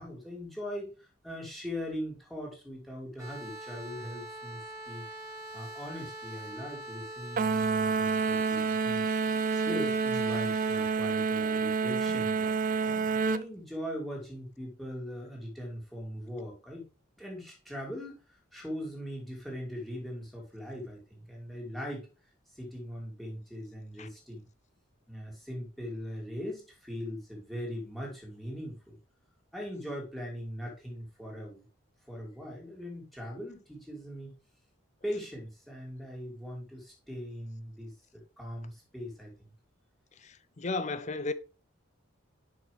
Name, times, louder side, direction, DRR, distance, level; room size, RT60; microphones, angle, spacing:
voice 1, 0.0-5.0 5.5-9.1 9.7-12.9 13.2-16.8 17.2-22.1 22.5-24.5 25.1-29.0 29.5-31.7 32.1-34.3 35.0-39.5, equal, ahead, 2.6 m, -40 dB
sound 1, 3.2-10.9, right 1 dB, 15° right, 2.2 m, -43 dB
sound 2, 7.4-13.4, right 5 dB, 40° right, 0.4 m, -28 dB
voice 2, 12.8-13.3 24.0-24.1 40.2-41.3, left 3 dB, 35° left, 0.5 m, -35 dB
7.4 x 6.1 x 3.3 m
head